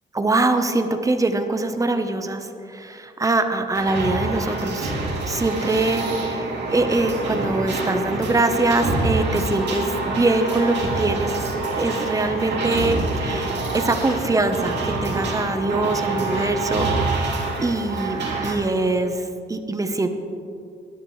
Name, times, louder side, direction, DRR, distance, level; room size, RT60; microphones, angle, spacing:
voice 1, 0.1-4.9 5.3-11.4 11.8-20.1, right 2 dB, 15° right, 7 dB, 1.0 m, -23 dB
sound 1, 3.7-18.5, right 2 dB, 60° right, 2.9 m, -26 dB
19.5 x 11.0 x 3.3 m, 2.5 s
cardioid pair, 90°, 20 cm